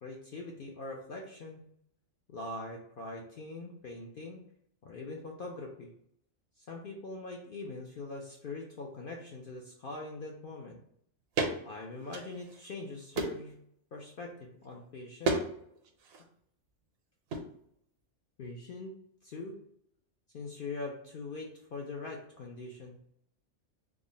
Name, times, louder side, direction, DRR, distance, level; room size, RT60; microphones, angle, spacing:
voice 1, 0.0-1.6 2.3-4.4 4.8-5.9 6.6-10.8 11.6-13.5 13.9-15.4 18.4-18.9 19.2-19.6 20.3-23.0, left 3 dB, 60° left, -1 dB, 0.6 m, -42 dB
sound 1, 11.4-11.6 12.0-12.7 13.1-13.5 15.2-15.5 15.8-16.2 17.3-17.5, right 3 dB, 60° right, 0.7 m, -32 dB
3.6 x 2.0 x 3.8 m, 0.70 s
omnidirectional pair, 1.3 m